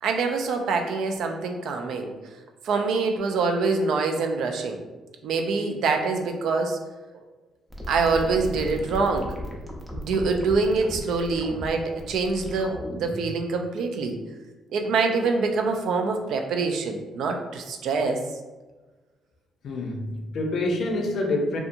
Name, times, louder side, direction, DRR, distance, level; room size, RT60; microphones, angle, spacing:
voice 1, 0.0-2.1 2.6-4.8 5.2-6.8 7.9-9.3 9.9-14.2 14.7-18.2, right 4 dB, 75° right, 4 dB, 0.3 m, -25 dB
sound 1, 7.7-13.3, equal, 5° right, 0.6 m, -36 dB
voice 2, 19.6-21.6, left 2 dB, 60° left, 2 dB, 0.5 m, -27 dB
2.7 x 2.3 x 2.5 m, 1.2 s
cardioid pair, 90°, 0 cm